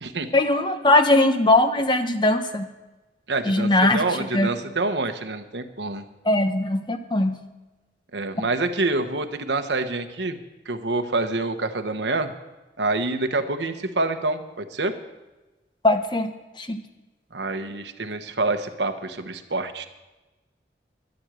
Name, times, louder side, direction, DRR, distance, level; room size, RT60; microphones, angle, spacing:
voice 1, 0.3-2.7 3.5-4.5 6.2-7.4 15.8-16.3 16.6-16.8, left 2 dB, 25° left, 7 dB, 0.9 m, -20 dB
voice 2, 3.3-6.0 8.1-10.4 10.7-12.3 12.8-14.9 17.3-19.9, right 2 dB, 85° right, 7 dB, 1.2 m, -27 dB
12.0 x 8.0 x 9.0 m, 1.1 s
head